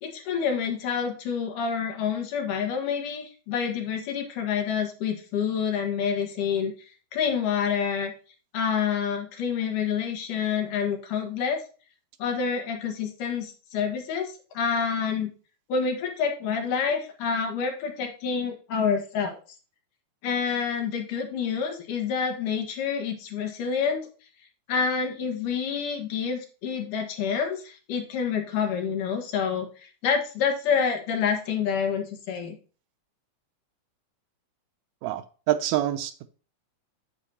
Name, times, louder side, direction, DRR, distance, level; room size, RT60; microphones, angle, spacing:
voice 1, 0.0-6.7 7.1-8.1 8.5-11.6 12.2-15.3 15.7-19.4 20.2-24.1 24.7-32.6, left 6 dB, 90° left, 3.1 m, -28 dB
voice 2, 35.0-36.3, right 13 dB, 80° right, 1.7 m, -27 dB
8.5 x 7.7 x 2.8 m
omnidirectional pair, 3.6 m